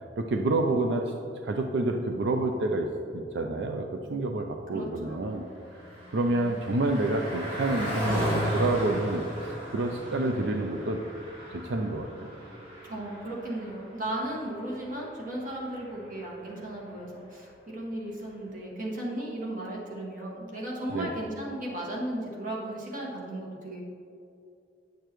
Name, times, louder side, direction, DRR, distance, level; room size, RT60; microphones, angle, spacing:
voice 1, 0.2-1.2 1.4-5.5 6.1-8.3 8.5-11.0 11.5-12.3 20.9-21.1, right 2 dB, 90° right, 3 dB, 0.5 m, -28 dB
voice 2, 4.7-5.3 12.9-23.8, right 1 dB, 50° right, -3 dB, 1.7 m, -35 dB
Car passing by, 5.0-16.8, equal, 30° right, 1.9 m, -36 dB
9.2 x 6.7 x 3.1 m, 2.6 s
head